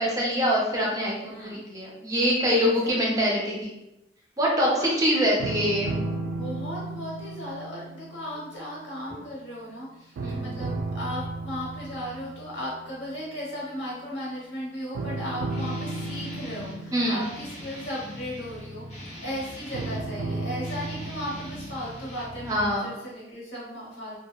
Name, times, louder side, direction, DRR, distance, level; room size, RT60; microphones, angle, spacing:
voice 1, 0.0-3.8 4.4-5.9 10.2-10.5 16.9-17.2 22.5-22.9, equal, 20° right, -3 dB, 0.5 m, -24 dB
voice 2, 1.3-1.6 2.6-2.9 4.7-4.9 6.2-24.2, equal, 85° left, -4 dB, 1.0 m, -36 dB
sound 1, 5.4-9.8 10.2-13.4 14.9-18.9 19.7-21.9, right 2 dB, 85° right, 0.3 m, -35 dB
Guitar, 15.5-16.8 17.2-20.1 20.6-22.7, equal, 40° left, 0.7 m, -42 dB
2.7 x 2.2 x 2.2 m, 0.89 s
head